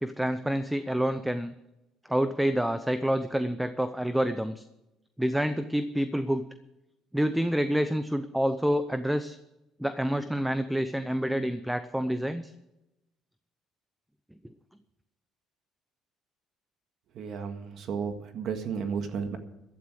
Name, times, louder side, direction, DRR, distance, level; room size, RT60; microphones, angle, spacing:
voice 1, 0.0-1.5 2.1-4.6 5.2-6.4 7.1-9.4 9.8-12.5, equal, 5° right, 11 dB, 0.7 m, -28 dB
voice 2, 17.1-19.4, right 6 dB, 60° right, 6 dB, 1.8 m, -33 dB
15.0 x 12.0 x 4.9 m, 0.92 s
cardioid pair, 115°, 0 cm